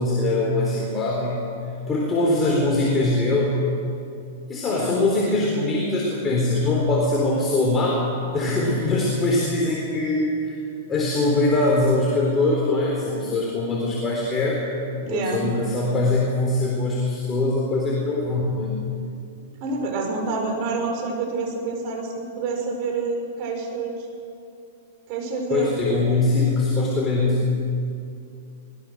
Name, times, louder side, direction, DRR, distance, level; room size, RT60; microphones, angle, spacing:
voice 1, 0.0-1.4 1.9-3.5 4.5-8.0 8.3-10.6 10.9-14.6 14.9-18.8 25.5-27.4, left 2 dB, 15° left, -4 dB, 4.1 m, -22 dB
voice 2, 4.6-4.9 15.1-15.4 19.6-24.1 25.1-25.8, right 3 dB, 45° right, 2 dB, 5.6 m, -28 dB
23.0 x 21.0 x 6.5 m, 2.6 s
hypercardioid pair, 145°, 0 cm